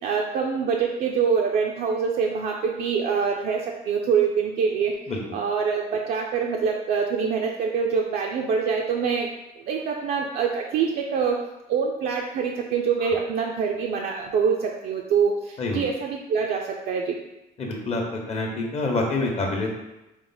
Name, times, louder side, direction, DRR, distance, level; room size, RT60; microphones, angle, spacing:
voice 1, 0.0-5.0 5.3-9.3 9.6-11.4 11.7-17.2, right 6 dB, 65° right, 0 dB, 0.4 m, -25 dB
voice 2, 17.6-19.8, left 2 dB, 40° left, 0 dB, 0.8 m, -27 dB
4.4 x 2.0 x 3.8 m, 0.95 s
cardioid pair, 110°, 17 cm